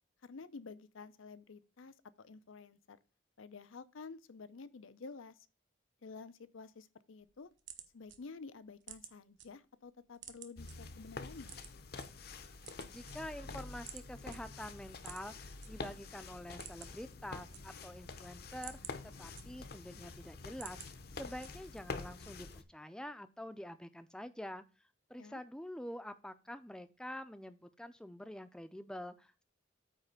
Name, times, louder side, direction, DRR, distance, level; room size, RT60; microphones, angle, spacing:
voice 1, 0.2-3.0 3.4-5.5 6.0-7.5 7.9-11.5 25.2-25.4, left 4 dB, 90° left, 0.6 m, -51 dB
sound 1, 7.2-9.5 9.8-10.7 11.4-12.1 12.5-13.5 13.9-14.0 14.3-14.4 15.0-15.7 16.0-16.1 16.4-17.1 17.3-18.0 18.4-19.9 20.3-20.9 21.4-21.8, right 10 dB, 70° right, 1.0 m, -51 dB
sound 2, 10.6-22.6, left 3 dB, 50° left, 0.7 m, -47 dB
voice 2, 12.9-18.8 19.0-20.8 21.2-24.6 25.1-29.4, left 1 dB, 5° left, 0.5 m, -47 dB
8.9 x 3.3 x 6.6 m
head